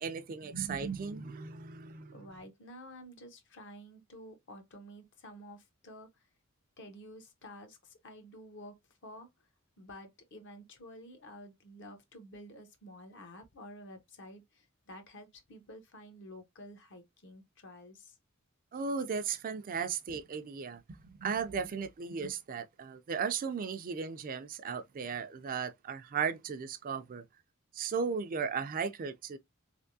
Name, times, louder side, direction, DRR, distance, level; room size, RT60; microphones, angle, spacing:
voice 1, 0.0-2.1 18.7-27.2 27.7-29.4, right 6 dB, 40° right, 0.4 m, -36 dB
voice 2, 2.1-6.3 6.8-9.3 9.8-18.2, equal, 60° left, 0.9 m, -51 dB
3.4 x 3.0 x 2.6 m
head